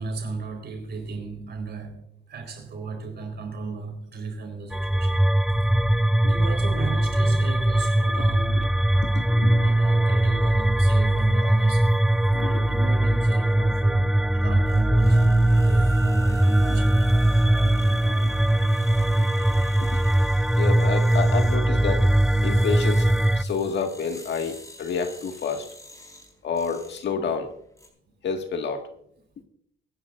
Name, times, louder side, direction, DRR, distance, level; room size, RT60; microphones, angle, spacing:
voice 1, 0.0-5.2 6.2-8.7 9.6-11.9 12.4-17.1, right 3 dB, 55° right, 4.3 m, -34 dB
sound 1, 4.7-23.4, right 1 dB, ahead, 0.4 m, -20 dB
voice 2, 8.1-8.6 9.2-9.7 12.3-12.8 16.4-16.8 17.6-18.3 19.1-19.6 20.6-22.1 22.4-23.1 23.4-25.7 26.4-27.5 28.2-28.9, left 5 dB, 65° left, 1.8 m, -30 dB
sound 2, 13.2-27.9, left 1 dB, 15° left, 4.1 m, -49 dB
23.0 x 10.5 x 2.5 m
cardioid pair, 90°, 20 cm